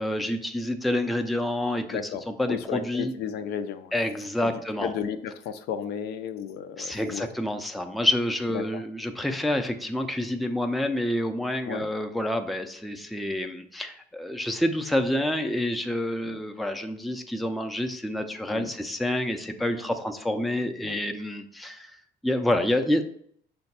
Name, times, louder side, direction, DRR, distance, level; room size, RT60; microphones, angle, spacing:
voice 1, 0.0-2.0 2.3-3.1 3.9-4.9 6.8-22.0 22.2-23.0, left 1 dB, ahead, 5 dB, 0.4 m, -28 dB
voice 2, 1.9-4.0 4.4-7.3 8.5-8.8 11.7-11.9 16.2-16.4 18.5-18.7 20.8-21.0, left 8 dB, 75° left, 9 dB, 0.4 m, -34 dB
5.6 x 2.2 x 4.0 m, 0.65 s
cardioid pair, 110°, 17 cm